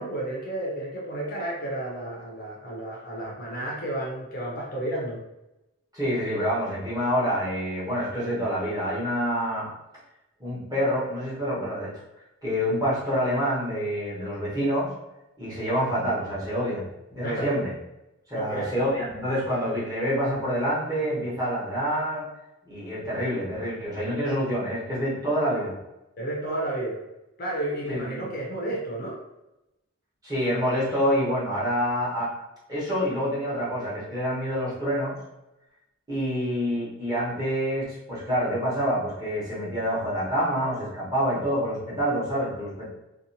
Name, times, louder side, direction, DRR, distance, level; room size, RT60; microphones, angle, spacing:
voice 1, 0.0-5.2 17.2-17.5 18.3-18.7 26.2-27.0 27.4-29.2, right 1 dB, 45° left, -3 dB, 0.6 m, -32 dB
voice 2, 5.9-9.7 10.4-12.0 12.4-14.9 15.4-17.7 18.3-22.2 22.7-25.8 27.9-28.2 30.2-32.3 32.7-35.2 36.1-42.9, equal, 20° right, -8 dB, 1.1 m, -27 dB
2.7 x 2.3 x 2.7 m, 0.93 s
head